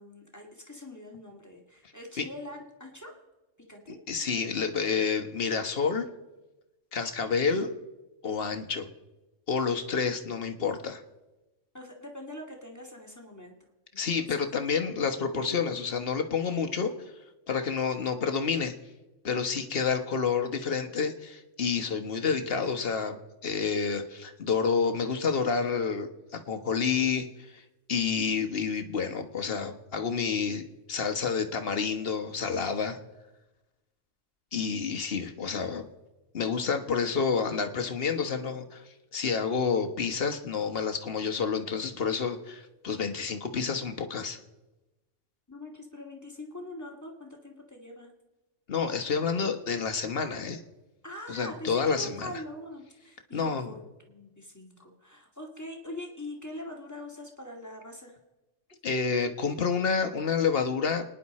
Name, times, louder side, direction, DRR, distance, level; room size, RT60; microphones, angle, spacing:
voice 1, 0.0-3.1 3.6-4.0 11.7-13.5 13.9-14.3 45.5-48.1 51.0-58.2, left 1 dB, 15° left, 1 dB, 2.1 m, -43 dB
voice 2, 3.9-6.1 6.9-7.7 8.2-8.9 9.5-11.0 14.0-16.9 17.5-18.7 19.2-23.2 23.4-27.3 27.5-27.6 27.9-33.0 34.5-35.9 36.3-38.8 39.1-44.4 48.7-50.6 51.3-52.3 53.3-53.7 58.8-61.0, left 5 dB, 50° left, 7 dB, 1.4 m, -29 dB
29.5 x 10.0 x 4.2 m, 1.1 s
omnidirectional pair, 1.3 m